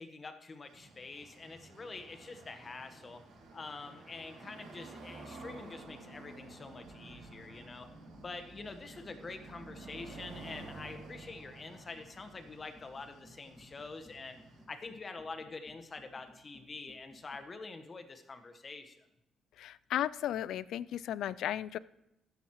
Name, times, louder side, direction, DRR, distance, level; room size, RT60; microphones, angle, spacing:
voice 1, 0.0-3.2 3.5-7.9 8.1-14.4 14.7-19.1, left 3 dB, 35° left, 8 dB, 1.2 m, -46 dB
sound 1, 0.7-14.6, right 2 dB, 80° right, 4.3 m, -51 dB
sound 2, 11.8-17.5, equal, ahead, 2.1 m, -61 dB
voice 2, 19.6-21.8, left 11 dB, 80° left, 20 dB, 0.3 m, -35 dB
14.5 x 10.5 x 3.1 m, 0.85 s
cardioid pair, 90°, 0 cm